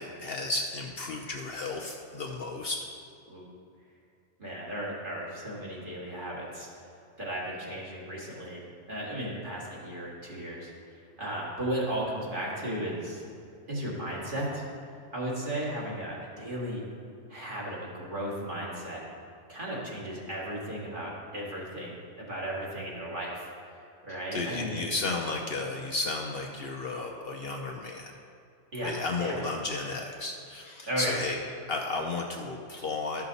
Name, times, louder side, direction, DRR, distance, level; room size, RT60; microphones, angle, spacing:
voice 1, 0.0-2.8 24.1-28.1 28.8-31.4 31.7-33.2, left 3 dB, 60° left, 1 dB, 0.8 m, -33 dB
voice 2, 4.4-6.8 7.2-13.2 13.7-16.9 17.3-19.1 19.5-24.9 28.7-28.9 29.2-29.4 30.9-31.2, right 1 dB, 40° right, -5 dB, 1.9 m, -35 dB
12.5 x 5.7 x 4.0 m, 2.4 s
omnidirectional pair, 1.3 m